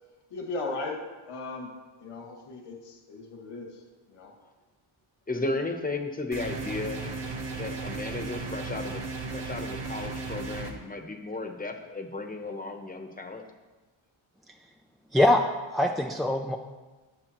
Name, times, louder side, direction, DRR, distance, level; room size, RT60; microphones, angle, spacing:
voice 1, 0.3-0.9 1.3-1.7 2.0-3.7 4.1-4.3, left 3 dB, 90° left, 0 dB, 2.2 m, -36 dB
voice 2, 5.3-7.0 7.5-9.0 9.3-13.4, left 2 dB, 15° left, 4 dB, 1.0 m, -34 dB
sound 1, 6.3-10.7, right 3 dB, 55° right, 1.7 m, -35 dB
voice 3, 15.1-15.4 15.7-16.6, left 1 dB, ahead, 1 dB, 0.4 m, -22 dB
20.0 x 7.6 x 3.1 m, 1.2 s
wide cardioid pair, 165°, 50 cm